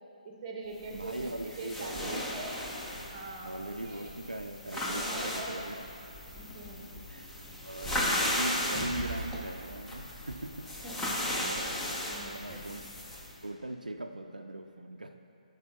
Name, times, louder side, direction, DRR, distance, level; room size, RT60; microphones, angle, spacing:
voice 1, 0.2-2.6 3.1-4.1 4.9-5.7 6.4-6.9 10.8-11.3 12.0-12.6, right 2 dB, 25° right, 1 dB, 1.0 m, -43 dB
sound 1, 0.8-13.3, left 1 dB, 10° left, 0.8 m, -36 dB
voice 2, 0.9-2.3 3.4-5.8 7.1-10.7 11.3-11.8 12.2-12.9 13.4-15.2, right 2 dB, 80° right, 5 dB, 0.4 m, -40 dB
11.0 x 4.9 x 4.4 m, 2.8 s
figure-of-eight pair, 135°, 4 cm